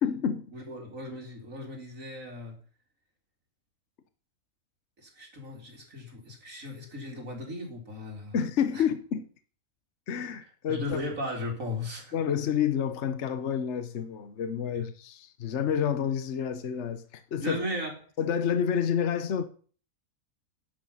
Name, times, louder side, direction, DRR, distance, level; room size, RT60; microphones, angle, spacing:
voice 1, 0.0-0.4 8.3-9.2 10.1-11.0 12.1-17.6 18.2-19.5, left 8 dB, 55° left, 1.2 m, -29 dB
voice 2, 0.5-2.6 5.0-8.4 8.7-8.8 10.7-12.1 14.7-14.8 17.4-17.9, left 1 dB, 65° right, 4.1 m, -36 dB
11.5 x 10.0 x 5.7 m
omnidirectional pair, 1.5 m